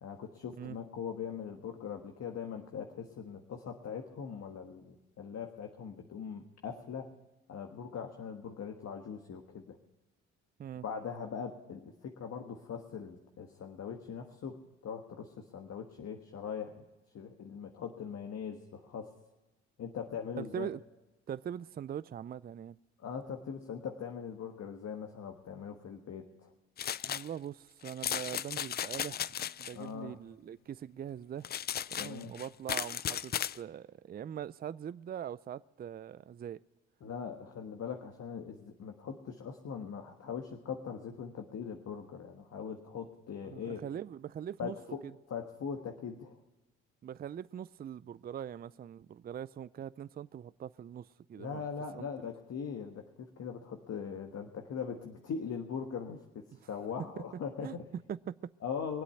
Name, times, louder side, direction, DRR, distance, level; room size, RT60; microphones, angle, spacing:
voice 1, 0.0-7.1 7.5-9.8 10.8-16.8 17.1-19.1 19.8-20.7 23.0-26.5 29.7-30.2 32.0-32.3 37.0-43.9 44.6-45.0 45.3-46.4 51.4-57.8 58.6-59.0, left 6 dB, 55° left, 1.5 m, -41 dB
voice 2, 20.4-20.8 21.3-22.8 27.0-29.2 29.6-31.5 31.9-36.6 43.4-44.8 45.0-45.1 47.0-51.7 51.9-52.3 57.2-57.3 57.6-58.5, right 9 dB, 30° right, 0.4 m, -42 dB
sound 1, 26.8-27.3 27.8-29.7 31.4-33.6, left 9 dB, 30° left, 0.4 m, -36 dB
23.0 x 8.3 x 5.7 m
supercardioid pair, 65°, 32 cm